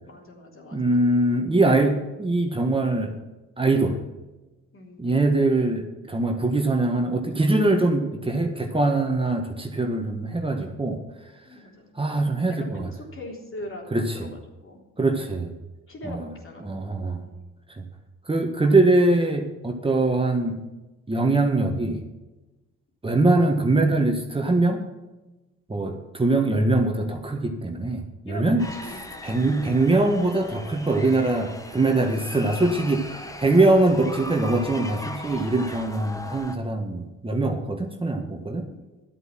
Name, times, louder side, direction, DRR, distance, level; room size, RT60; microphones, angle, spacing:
voice 1, 0.1-1.0 4.7-5.0 11.4-11.9 12.6-15.2 15.9-16.8 17.2-17.4 28.3-29.5 31.9-32.3 38.7-39.0, left 1 dB, 45° left, 0 dB, 3.6 m, -41 dB
voice 2, 0.7-3.1 3.6-4.0 5.0-11.0 12.0-12.9 13.9-14.3 15.0-15.5 16.0-16.3 16.6-17.2 17.7-17.8 18.3-20.6 21.1-22.0 23.0-24.8 25.7-28.6 29.2-38.6, right 2 dB, 20° right, 3 dB, 1.6 m, -22 dB
sound 1, 28.6-36.6, left 1 dB, 10° left, 1.3 m, -39 dB
11.0 x 8.2 x 7.5 m, 1.1 s
cardioid pair, 90°, 30 cm